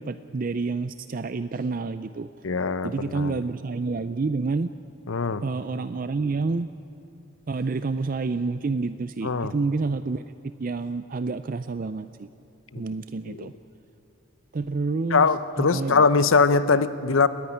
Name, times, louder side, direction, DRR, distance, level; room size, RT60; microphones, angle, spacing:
voice 1, 0.0-2.3 2.8-4.7 5.4-6.7 7.5-10.2 10.6-12.3 12.8-13.5 14.5-15.3 15.6-16.0, right 3 dB, 45° right, 12 dB, 0.4 m, -28 dB
voice 2, 2.4-3.3 5.1-5.4 9.2-9.5 12.7-12.8 13.3-13.5 15.1-17.3, left 4 dB, 85° left, 13 dB, 0.8 m, -22 dB
29.5 x 10.0 x 10.0 m, 2.7 s
head